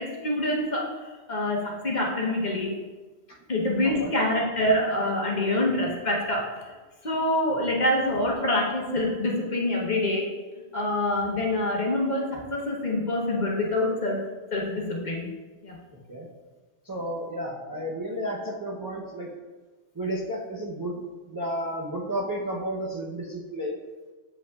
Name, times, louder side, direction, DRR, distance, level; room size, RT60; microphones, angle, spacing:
voice 1, 0.0-2.8 3.5-6.7 7.0-10.4 10.7-15.3 15.6-15.8, left 1 dB, 40° left, -2 dB, 1.0 m, -26 dB
voice 2, 3.8-4.1 5.7-5.8 7.5-7.6 16.1-16.3 16.8-19.3 19.9-21.0 21.3-23.8, right 1 dB, 25° right, -4 dB, 0.5 m, -32 dB
7.6 x 5.3 x 2.3 m, 1.3 s
omnidirectional pair, 1.2 m